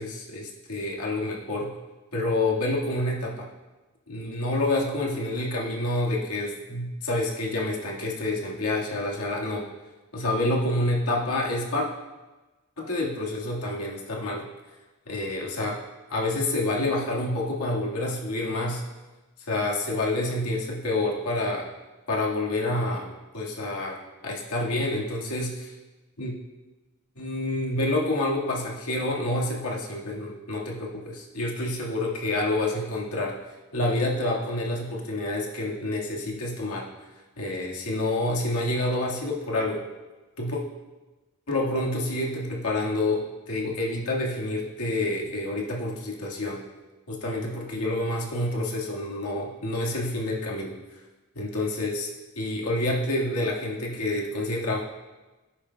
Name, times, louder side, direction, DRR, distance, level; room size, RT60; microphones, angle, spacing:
voice 1, 0.0-1.7 2.1-3.5 4.1-9.6 10.1-11.9 12.8-14.5 15.1-15.8 16.1-18.8 19.5-21.7 22.1-23.1 23.3-25.7 26.2-26.3 27.1-33.3 33.7-36.9 37.4-39.8 40.4-40.6 41.5-46.6 47.1-50.8 51.4-52.1 52.3-54.8, left 1 dB, 75° left, -2 dB, 1.8 m, -28 dB
17.0 x 8.6 x 2.3 m, 1.2 s
head